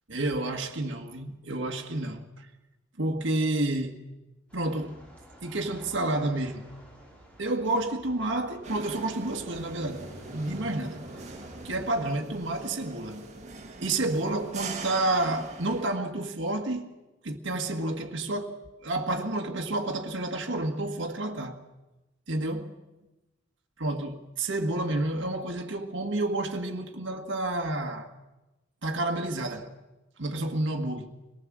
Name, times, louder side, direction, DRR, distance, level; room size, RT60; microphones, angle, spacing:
voice 1, 0.1-2.5 3.0-4.0 4.5-5.0 5.4-6.7 7.4-11.1 11.6-13.3 13.8-17.0 17.2-21.6 22.3-22.6 23.8-28.1 28.8-29.7 30.2-31.2, right 2 dB, 65° right, 1.8 m, -30 dB
sound 1, 4.5-11.7, equal, 5° left, 5.9 m, -51 dB
sound 2, 8.6-15.8, right 3 dB, 35° right, 2.2 m, -42 dB
25.0 x 18.5 x 7.5 m
head